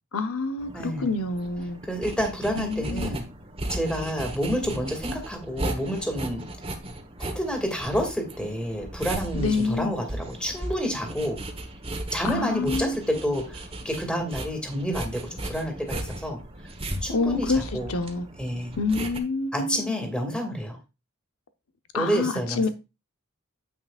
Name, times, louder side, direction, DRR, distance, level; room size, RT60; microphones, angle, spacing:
voice 1, 0.1-1.8 2.5-3.1 9.3-10.0 12.2-13.0 17.1-17.6 17.9-18.3 18.8-19.9 21.9-22.7, left 3 dB, 80° left, 0.8 m, -27 dB
sound 1, 0.6-19.2, right 1 dB, 25° right, 1.2 m, -36 dB
voice 2, 0.7-1.1 1.9-3.2 3.7-6.4 7.2-11.4 12.1-13.6 13.8-16.4 17.0-17.9 18.4-18.7 19.5-20.8 21.9-22.7, equal, 5° left, 2.3 m, -29 dB
9.3 x 8.0 x 2.4 m
head